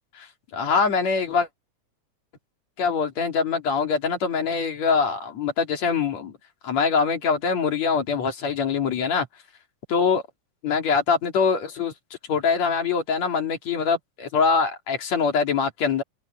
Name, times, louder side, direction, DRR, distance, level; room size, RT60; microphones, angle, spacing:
voice 1, 0.5-1.5 2.8-6.3 6.6-9.3 9.9-10.2 10.6-11.9 12.3-16.0, left 5 dB, 65° left, 3.7 m, -23 dB
omnidirectional pair, 3.4 m